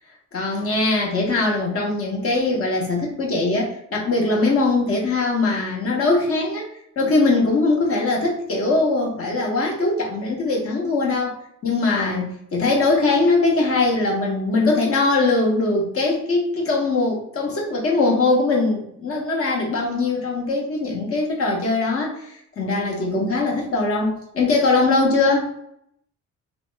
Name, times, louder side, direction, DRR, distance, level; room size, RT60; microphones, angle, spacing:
voice 1, 0.3-6.6 7.0-25.5, left 3 dB, 50° left, -2 dB, 1.1 m, -21 dB
2.9 x 2.1 x 3.3 m, 0.73 s
cardioid pair, 90°, 30 cm